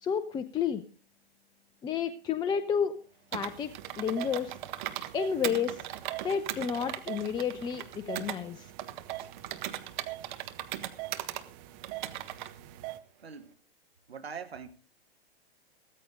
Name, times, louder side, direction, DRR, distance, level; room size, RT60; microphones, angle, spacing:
voice 1, 0.0-0.8 1.8-2.9 3.3-3.7 4.0-4.6 5.1-5.8 6.2-8.7, left 7 dB, 15° left, 0.6 m, -31 dB
Computer keyboard, 3.3-5.1 5.4-8.4 8.8-11.4 11.8-12.5, right 12 dB, 50° right, 1.5 m, -38 dB
sound 1, 3.4-13.0, right 16 dB, 35° right, 1.1 m, -45 dB
voice 2, 13.2-13.5 14.1-14.7, right 6 dB, 85° right, 1.4 m, -42 dB
15.5 x 14.0 x 3.8 m
hypercardioid pair, 115°, 31 cm